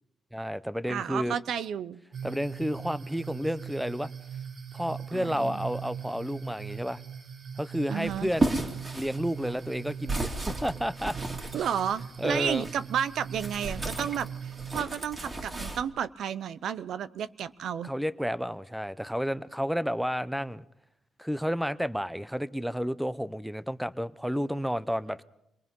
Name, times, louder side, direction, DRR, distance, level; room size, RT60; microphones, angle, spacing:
voice 1, 0.3-1.4 2.2-4.1 4.7-7.0 7.6-8.6 8.9-11.2 11.5-11.7 12.2-12.7 17.8-20.6 21.2-25.2, equal, ahead, 16 dB, 0.7 m, -31 dB
voice 2, 0.9-2.0 5.1-5.5 7.9-8.3 11.5-17.9, right 8 dB, 70° right, 15 dB, 0.7 m, -32 dB
sound 1, 2.1-14.8, right 7 dB, 50° right, 1.5 m, -41 dB
sound 2, 8.0-12.8 13.3-15.8, right 2 dB, 25° right, 2.6 m, -34 dB
25.0 x 20.0 x 5.4 m, 0.81 s
cardioid pair, 90°, 0 cm